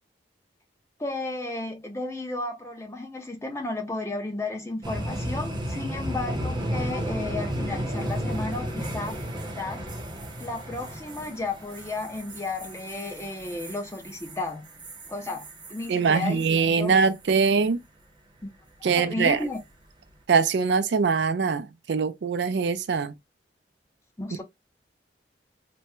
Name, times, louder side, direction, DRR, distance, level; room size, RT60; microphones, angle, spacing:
voice 1, 1.0-9.2 9.6-9.8 10.4-14.7 15.1-16.9 18.4-18.5 18.8-19.6 24.2-24.4, left 2 dB, 15° left, 0.6 m, -33 dB
sound 1, 4.8-16.7 17.0-17.4 19.4-19.7, equal, 25° right, 0.8 m, -34 dB
voice 2, 15.9-17.8 18.8-19.4 20.3-23.1, right 5 dB, 70° right, 0.4 m, -23 dB
3.4 x 2.1 x 2.9 m
head